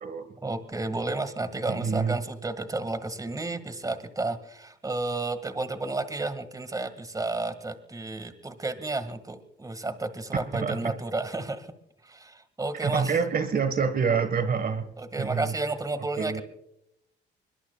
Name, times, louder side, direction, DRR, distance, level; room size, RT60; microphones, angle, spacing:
voice 1, 0.4-11.7 12.0-13.2 15.0-16.4, right 2 dB, 15° right, 10 dB, 1.8 m, -32 dB
voice 2, 1.7-2.2 10.5-10.9 12.8-14.9 15.2-15.5 16.2-16.4, right 6 dB, 45° right, 10 dB, 1.5 m, -27 dB
25.5 x 22.5 x 2.3 m, 0.79 s
cardioid pair, 90°, 20 cm